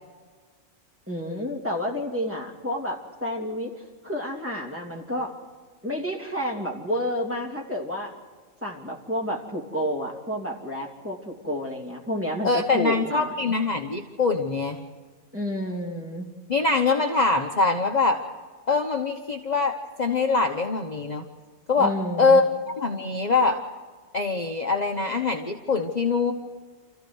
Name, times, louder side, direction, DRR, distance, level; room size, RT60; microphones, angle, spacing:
voice 1, 1.1-5.4 5.8-8.1 8.6-13.5 15.3-16.3 21.8-22.4, equal, 10° right, -1 dB, 3.0 m, -30 dB
voice 2, 12.4-14.8 16.5-18.2 18.7-21.3 21.7-21.9 22.2-22.4 22.8-23.6 24.1-26.3, left 4 dB, 35° left, 3 dB, 1.2 m, -23 dB
28.5 x 14.5 x 6.3 m, 1.5 s
omnidirectional pair, 1.3 m